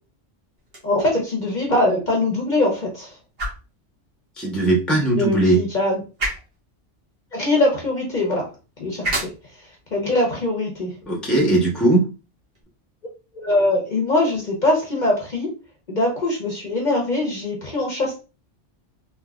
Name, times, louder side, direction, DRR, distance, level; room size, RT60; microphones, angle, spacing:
sound 1, 0.6-12.6, right 1 dB, 55° right, 1.4 m, -36 dB
voice 1, 0.8-3.1 5.2-6.0 7.3-8.5 8.8-9.3 9.9-10.9 13.3-15.5 15.9-18.1, left 2 dB, 45° left, 0 dB, 0.9 m, -22 dB
voice 2, 4.4-5.6 11.1-12.0, right 2 dB, ahead, -1 dB, 0.8 m, -18 dB
3.7 x 2.7 x 2.3 m, 0.31 s
omnidirectional pair, 1.2 m